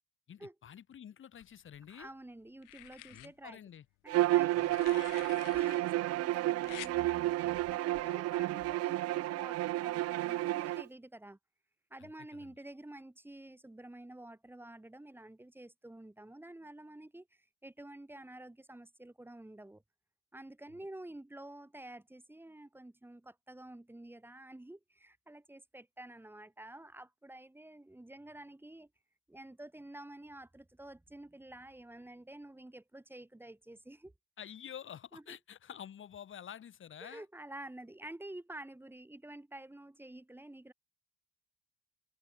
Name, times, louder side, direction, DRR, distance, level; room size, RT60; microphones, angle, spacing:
voice 1, 0.3-2.1 3.1-3.9 4.5-4.8 12.0-12.5 20.7-20.8 34.4-37.2, left 9 dB, 40° left, 0.9 m, -49 dB
sound 1, 1.4-2.1 2.6-3.3 4.4-5.8 6.6-6.9 8.3-8.5, left 25 dB, 80° left, 0.5 m, -49 dB
voice 2, 1.9-3.6 4.0-11.4 11.9-19.8 20.3-28.9 29.3-34.1 35.1-35.4 37.0-40.7, right 1 dB, 5° right, 1.1 m, -50 dB
Bowed string instrument, 4.1-10.8, right 16 dB, 50° right, 0.4 m, -31 dB
supercardioid pair, 80°, 32 cm